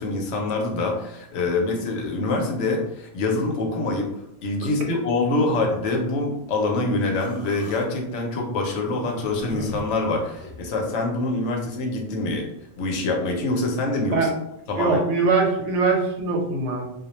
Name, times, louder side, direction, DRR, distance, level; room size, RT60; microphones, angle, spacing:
voice 1, 0.0-4.1 4.4-12.5 12.8-14.3 14.7-15.0, left 2 dB, 80° left, 1 dB, 0.9 m, -25 dB
Human voice, 7.1-7.8 8.8-10.7, left 1 dB, 15° left, 0.4 m, -39 dB
voice 2, 14.7-16.8, right 4 dB, 90° right, 1 dB, 1.0 m, -22 dB
2.3 x 2.0 x 2.9 m, 0.80 s
omnidirectional pair, 1.2 m